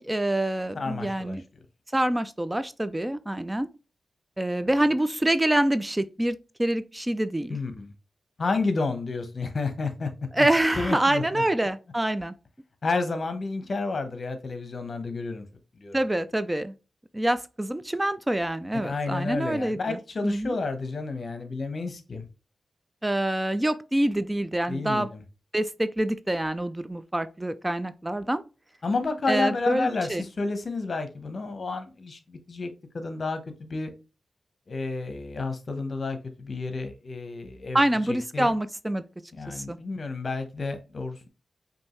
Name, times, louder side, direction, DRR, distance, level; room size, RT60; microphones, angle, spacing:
voice 1, 0.0-1.4 1.9-3.7 4.4-7.6 10.3-12.3 15.9-16.7 17.1-20.0 20.2-20.5 23.0-25.1 25.5-28.4 29.3-30.3 37.7-39.0 39.5-39.8, right 1 dB, 15° right, 0.3 m, -26 dB
voice 2, 0.7-1.6 7.5-7.9 8.4-10.1 10.4-10.5 10.8-11.4 12.8-15.4 15.8-16.0 18.8-22.2 24.7-25.2 28.8-33.9 34.7-37.8 38.1-38.5 39.3-41.3, left 3 dB, 50° left, 0.9 m, -31 dB
5.3 x 2.7 x 3.0 m
cardioid pair, 80°, 0 cm